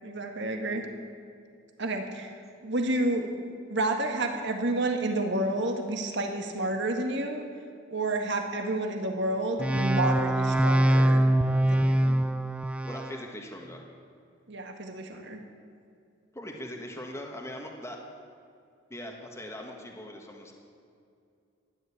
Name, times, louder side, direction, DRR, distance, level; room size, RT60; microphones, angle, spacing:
voice 1, 0.0-0.9 1.8-2.3 2.6-3.3 3.7-7.4 7.9-11.2 11.6-12.2 14.5-15.4, right 2 dB, 60° right, 4 dB, 1.9 m, -30 dB
sound 1, 9.6-13.2, right 1 dB, 5° right, 0.4 m, -23 dB
voice 2, 12.8-13.8 16.3-18.0 18.9-20.5, left 1 dB, 15° left, 1 dB, 1.6 m, -40 dB
14.0 x 11.0 x 8.5 m, 2.4 s
head